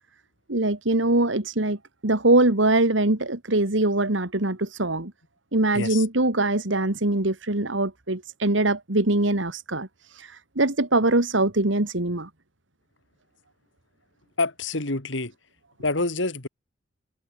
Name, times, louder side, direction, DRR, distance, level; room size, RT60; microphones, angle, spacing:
voice 1, 0.5-1.8 2.0-5.1 5.5-9.9 10.2-10.3 10.6-12.3, right 2 dB, 75° right, 2.4 m, -22 dB
voice 2, 14.4-15.3 15.8-16.5, left 3 dB, 75° left, 2.5 m, -27 dB
head